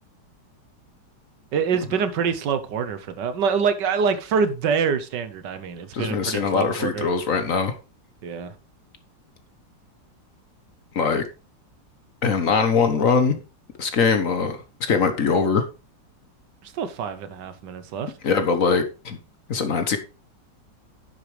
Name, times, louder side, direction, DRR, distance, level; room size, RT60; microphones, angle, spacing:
voice 1, 1.5-7.1 8.2-8.6 16.6-18.1, right 6 dB, 75° right, 1.5 m, -25 dB
voice 2, 5.9-7.7 10.9-11.2 12.2-13.4 13.8-15.6 18.2-19.2 19.5-20.0, left 5 dB, 50° left, 1.3 m, -22 dB
10.0 x 8.0 x 3.3 m
omnidirectional pair, 1.9 m